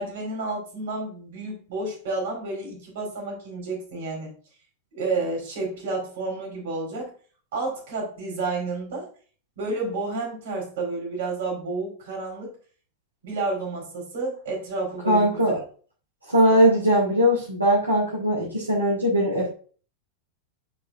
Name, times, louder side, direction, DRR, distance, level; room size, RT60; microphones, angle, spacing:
voice 1, 0.0-4.3 4.9-7.1 7.5-9.1 9.6-12.5 13.2-15.6 16.5-16.8, right 3 dB, 55° right, 0 dB, 3.9 m, -30 dB
voice 2, 15.1-15.5 16.3-19.5, equal, 85° right, -5 dB, 2.2 m, -20 dB
10.5 x 4.8 x 2.5 m, 0.41 s
figure-of-eight pair, 90°, 0 cm